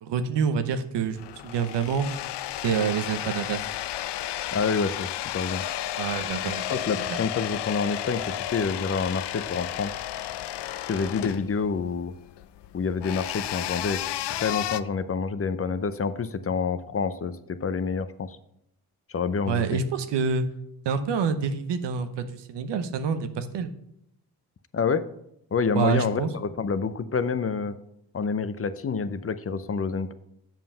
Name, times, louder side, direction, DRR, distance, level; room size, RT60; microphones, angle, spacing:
voice 1, 0.0-2.1 2.6-3.6 6.0-6.7 7.1-7.2 19.5-20.5 20.8-23.7 25.8-26.3, right 6 dB, 85° right, 9 dB, 0.9 m, -27 dB
sound 1, 1.1-14.8, left 13 dB, 80° left, 0.5 m, -33 dB
voice 2, 4.5-5.6 6.5-9.9 10.9-12.1 12.7-18.4 19.1-19.8 24.7-25.0 25.5-27.8 28.1-30.1, left 5 dB, 35° left, 12 dB, 0.6 m, -28 dB
7.4 x 5.4 x 5.6 m, 0.77 s
cardioid pair, 65°, 41 cm